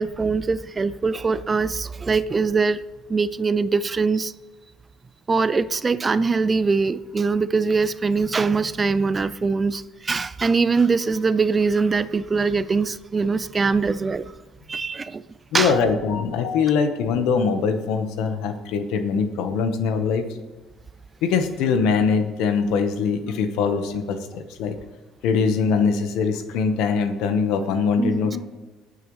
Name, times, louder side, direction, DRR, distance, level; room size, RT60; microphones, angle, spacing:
voice 1, 0.0-2.8 3.1-4.3 5.3-14.4 14.7-15.2 15.5-15.8 28.0-28.3, right 4 dB, 25° right, 0.5 m, -22 dB
voice 2, 15.5-20.2 21.2-24.7 25.2-28.5, left 5 dB, 75° left, 1.4 m, -22 dB
18.5 x 9.2 x 3.3 m
supercardioid pair, 95°, 0 cm